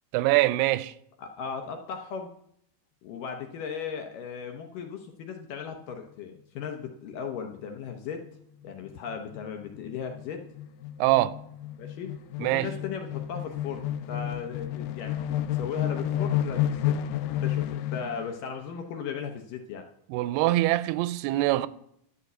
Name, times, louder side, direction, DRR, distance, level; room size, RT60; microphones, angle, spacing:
voice 1, 0.1-0.9 11.0-11.4 12.4-12.7 20.1-21.7, right 16 dB, 85° right, 2.5 m, -24 dB
voice 2, 1.2-2.3 3.0-8.2 8.6-10.4 11.8-12.1 12.4-19.8, left 6 dB, 75° left, 2.1 m, -37 dB
sound 1, 7.6-7.9 8.3-8.4 8.6-18.3, left 11 dB, 90° left, 2.7 m, -31 dB
11.0 x 5.2 x 8.0 m
omnidirectional pair, 4.6 m